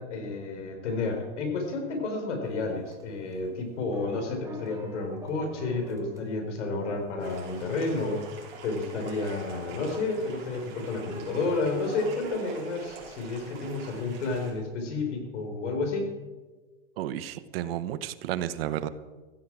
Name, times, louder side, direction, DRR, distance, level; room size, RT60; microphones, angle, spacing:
voice 1, 0.0-8.3 8.6-16.1, left 3 dB, 85° left, 4 dB, 4.8 m, -31 dB
sound 1, 2.6-7.0 7.3-7.4 7.8-14.4, right 3 dB, 10° right, 1.2 m, -46 dB
sound 2, 7.2-14.5, right 5 dB, 30° right, 4.9 m, -47 dB
voice 2, 17.0-18.9, right 12 dB, 55° right, 13 dB, 0.9 m, -32 dB
15.5 x 15.0 x 4.9 m, 1.3 s
supercardioid pair, 160°, 35 cm